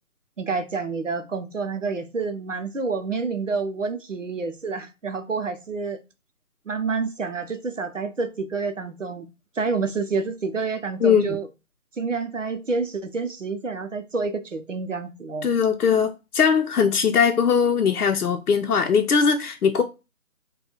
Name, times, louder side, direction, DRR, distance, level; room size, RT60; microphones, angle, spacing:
voice 1, 0.4-6.0 6.7-9.3 9.6-11.5 12.0-15.5, right 4 dB, 55° right, 0.7 m, -28 dB
voice 2, 11.0-11.4 15.4-19.8, left 6 dB, 80° left, 0.7 m, -20 dB
5.5 x 2.3 x 2.9 m
figure-of-eight pair, 180°, 44 cm